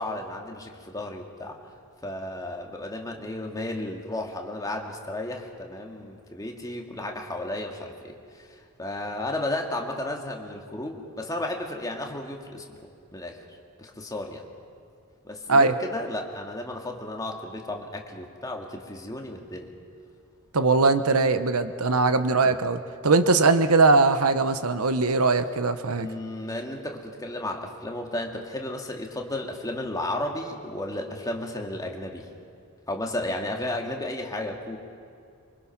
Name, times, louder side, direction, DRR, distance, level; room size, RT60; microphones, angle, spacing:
voice 1, 0.0-1.6 2.0-12.8 13.1-13.4 13.8-14.4 15.2-19.7 22.4-22.6 26.0-32.3 32.9-34.8, left 1 dB, 15° left, 1 dB, 2.1 m, -33 dB
voice 2, 20.5-26.1, right 3 dB, 75° right, 10 dB, 1.1 m, -21 dB
26.5 x 24.5 x 6.0 m, 2.4 s
head